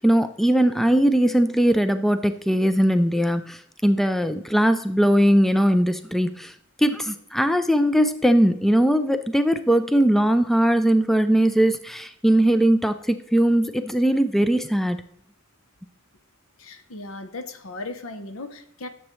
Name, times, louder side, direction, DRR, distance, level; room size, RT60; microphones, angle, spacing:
voice 1, 0.0-6.5 6.8-15.0, right 1 dB, ahead, 10 dB, 0.3 m, -20 dB
voice 2, 16.6-18.9, left 2 dB, 85° left, 9 dB, 0.8 m, -37 dB
11.5 x 7.2 x 3.2 m, 0.66 s
head